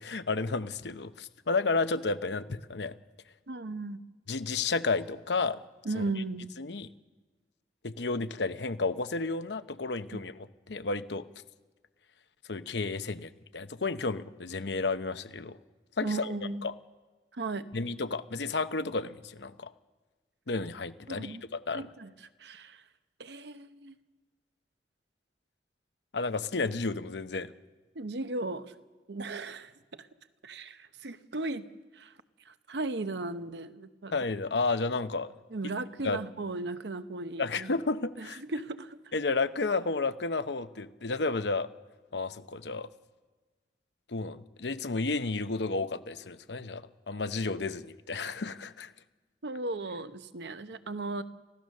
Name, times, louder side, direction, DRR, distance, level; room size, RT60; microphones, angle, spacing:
voice 1, 0.0-3.0 4.3-5.6 5.9-6.0 6.6-6.9 7.8-11.2 12.5-15.6 16.0-16.3 16.6-16.7 17.7-19.7 20.5-21.9 26.1-27.5 34.1-35.3 36.0-36.2 37.4-38.4 39.1-41.7 42.1-42.9 44.1-48.9, left 3 dB, 80° left, 11 dB, 0.9 m, -32 dB
voice 2, 3.5-4.0 5.8-6.5 10.1-10.2 16.0-16.7 17.3-17.7 21.1-21.4 21.7-22.1 22.4-22.8 23.2-23.9 27.9-28.7 29.1-30.1 30.4-31.7 31.9-32.1 32.5-34.1 35.5-37.8 38.2-39.0 49.4-51.2, right 2 dB, 80° right, 11 dB, 0.9 m, -36 dB
28.5 x 15.5 x 6.6 m, 1.3 s
head